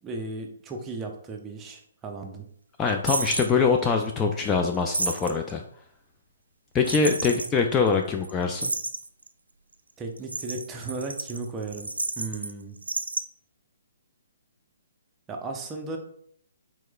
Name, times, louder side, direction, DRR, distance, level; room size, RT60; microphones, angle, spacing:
voice 1, 0.0-2.4 10.0-12.8 15.3-16.0, right 3 dB, 15° right, 2 dB, 0.7 m, -35 dB
voice 2, 2.8-5.6 6.7-8.7, left 5 dB, 15° left, 3 dB, 0.3 m, -23 dB
sound 1, 3.1-3.5 4.7-5.5 6.9-7.5 7.9-8.0 8.2-8.3 8.6-9.3 10.2-12.5 12.8-13.2, right 2 dB, 85° right, 0.4 m, -31 dB
4.6 x 4.2 x 2.3 m, 0.65 s
figure-of-eight pair, 135°, 0 cm